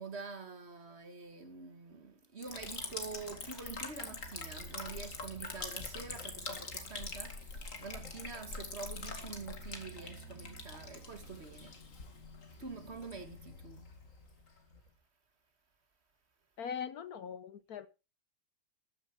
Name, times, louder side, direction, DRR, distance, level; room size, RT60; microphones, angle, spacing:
voice 1, 0.0-11.8 12.6-13.9, right 4 dB, 35° right, 1.7 m, -46 dB
Liquid, 2.4-14.9, left 3 dB, 40° left, 2.4 m, -44 dB
voice 2, 16.6-17.9, left 7 dB, 60° left, 1.1 m, -41 dB
14.0 x 9.9 x 4.4 m
omnidirectional pair, 2.2 m